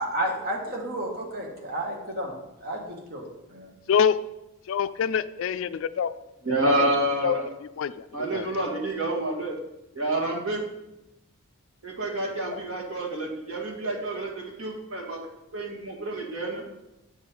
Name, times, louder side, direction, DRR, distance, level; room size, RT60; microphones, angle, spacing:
voice 1, 0.0-2.3 2.6-3.7, right 1 dB, 45° right, -1 dB, 1.6 m, -32 dB
voice 2, 3.9-4.2 4.7-6.1 6.8-7.0 7.2-7.4 7.8-8.6 12.5-12.6, left 7 dB, 65° left, 14 dB, 0.3 m, -26 dB
voice 3, 6.5-7.4 8.1-9.6 9.9-10.6 11.8-15.2 15.5-16.6, right 1 dB, 70° right, -1 dB, 1.9 m, -28 dB
8.3 x 5.4 x 4.4 m, 0.92 s
head